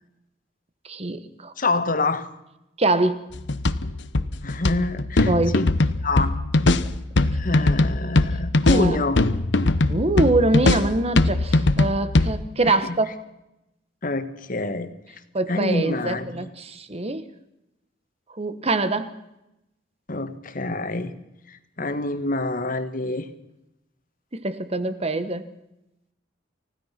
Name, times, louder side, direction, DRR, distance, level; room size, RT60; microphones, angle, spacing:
voice 1, 0.9-1.5 2.8-3.2 5.3-5.6 8.7-9.0 9.9-13.1 15.3-17.3 18.3-19.1 24.3-25.5, right 2 dB, 35° right, 12 dB, 1.4 m, -24 dB
voice 2, 1.6-2.3 4.4-5.7 6.0-6.4 7.3-9.2 12.7-13.0 14.0-14.9 15.5-16.5 20.1-21.1 21.5-23.3, left 2 dB, 50° left, 10 dB, 1.7 m, -26 dB
sound 1, 3.3-12.3, left 2 dB, 75° left, 1.0 m, -21 dB
29.5 x 16.0 x 6.0 m, 0.90 s
head